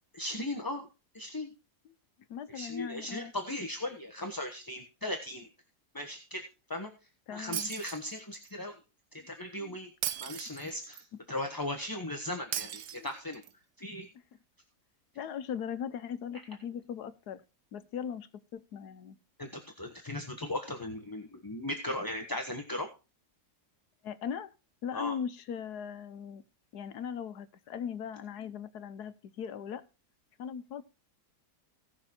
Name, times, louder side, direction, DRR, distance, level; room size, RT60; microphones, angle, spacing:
voice 1, 0.1-0.9 1.1-1.5 2.5-5.5 5.9-6.4 6.7-6.9 7.3-8.7 9.3-9.9 10.2-13.4 13.8-14.1 19.4-22.9 24.9-25.2, left 1 dB, 15° left, 4 dB, 0.9 m, -37 dB
voice 2, 2.3-3.3 7.3-7.7 9.2-9.3 9.6-9.8 12.9-13.1 15.1-17.4 17.7-19.2 24.0-24.5 24.8-26.4 26.7-29.8 30.4-30.8, left 8 dB, 75° left, 13 dB, 1.4 m, -39 dB
Shatter, 7.5-8.5 10.0-11.0 12.5-13.5, right 10 dB, 80° right, 1.3 m, -37 dB
17.0 x 6.2 x 4.3 m, 0.31 s
omnidirectional pair, 1.7 m